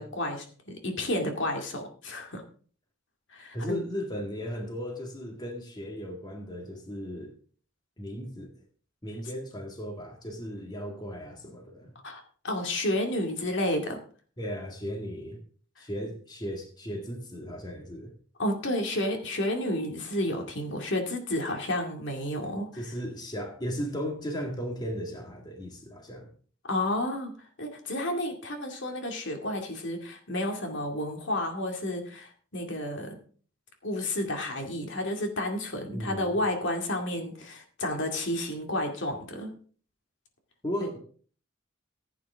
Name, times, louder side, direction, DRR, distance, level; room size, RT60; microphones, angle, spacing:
voice 1, 0.0-2.4 3.3-3.8 12.0-14.0 18.4-22.7 26.7-27.3 27.6-33.1 33.8-39.5 40.8-40.9, left 1 dB, 60° left, 3 dB, 2.2 m, -31 dB
voice 2, 3.5-7.3 8.0-8.5 9.0-11.9 14.4-15.4 15.8-18.1 22.8-26.3 35.9-36.4 40.6-41.0, equal, 20° left, 2 dB, 1.9 m, -36 dB
15.0 x 9.0 x 3.6 m, 0.44 s
head